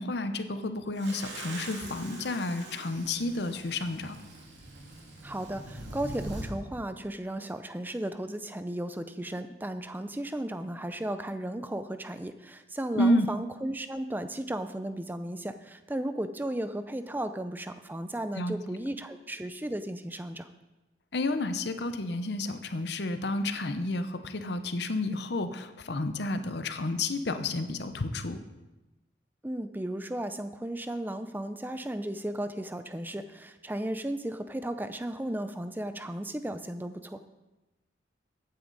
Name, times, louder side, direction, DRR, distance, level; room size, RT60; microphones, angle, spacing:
voice 1, 0.0-4.2 12.9-13.3 18.3-18.5 21.1-28.4, left 2 dB, 65° left, 9 dB, 0.8 m, -30 dB
sound 1, 1.0-6.5, right 1 dB, 75° right, 2.5 m, -43 dB
voice 2, 5.2-20.5 29.4-37.2, right 1 dB, 10° right, 10 dB, 0.5 m, -35 dB
14.0 x 9.5 x 4.0 m, 1.1 s
head